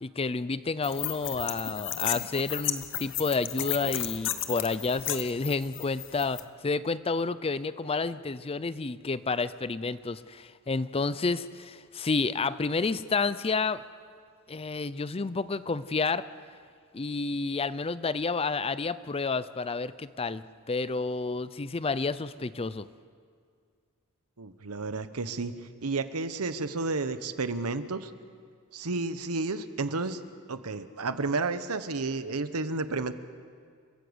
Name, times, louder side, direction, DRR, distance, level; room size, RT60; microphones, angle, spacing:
voice 1, 0.0-6.4 6.6-13.8 14.5-16.2 16.9-20.4 20.7-22.9, left 4 dB, 25° left, 15 dB, 0.5 m, -30 dB
sound 1, 0.8-6.4, left 12 dB, 60° left, 1.0 m, -34 dB
voice 2, 24.4-25.5 25.8-28.1 28.7-30.2 30.5-33.1, right 3 dB, 80° right, 11 dB, 1.1 m, -31 dB
29.5 x 13.5 x 8.1 m, 2.1 s
head